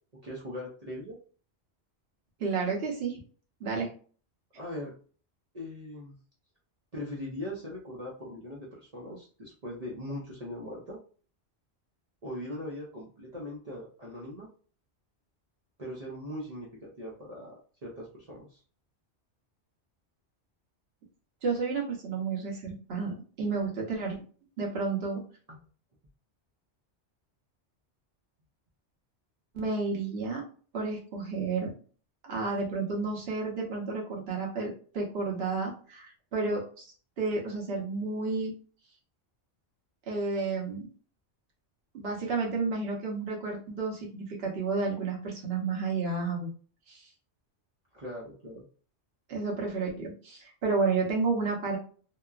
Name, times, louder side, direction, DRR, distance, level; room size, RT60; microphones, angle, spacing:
voice 1, 0.2-1.2 4.6-4.9 5.5-6.1 6.9-11.0 12.2-14.5 15.8-18.6 25.5-25.6 47.9-48.6, left 1 dB, 40° right, -5 dB, 0.7 m, -40 dB
voice 2, 2.4-3.2 3.6-3.9 21.4-24.2 24.6-25.2 29.5-30.4 30.7-31.7 32.2-36.8 37.2-38.5 40.1-40.9 41.9-46.5 46.9-47.0 49.3-51.8, right 4 dB, 60° right, -1 dB, 1.1 m, -31 dB
2.9 x 2.1 x 2.3 m, 0.40 s
omnidirectional pair, 1.2 m